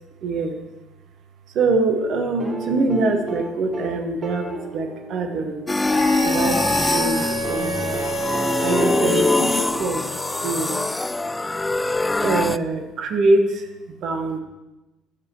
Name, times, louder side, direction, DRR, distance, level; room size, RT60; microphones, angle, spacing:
voice 1, 0.2-0.6 1.5-4.5 4.7-5.6 6.2-6.6 6.9-8.0 8.6-10.0 10.4-10.8 12.2-13.7 14.0-14.4, right 3 dB, 55° right, 7 dB, 1.2 m, -23 dB
sound 1, 2.4-6.5 7.4-11.0 12.5-12.6, right 2 dB, 30° right, 1.8 m, -34 dB
sound 2, 5.7-12.6, left 2 dB, 15° left, 0.3 m, -23 dB
Wind instrument woodwind instrument, 5.9-9.7, right 3 dB, 85° right, 3.4 m, -29 dB
17.0 x 8.0 x 3.1 m, 1.0 s
figure-of-eight pair, 50°, 0 cm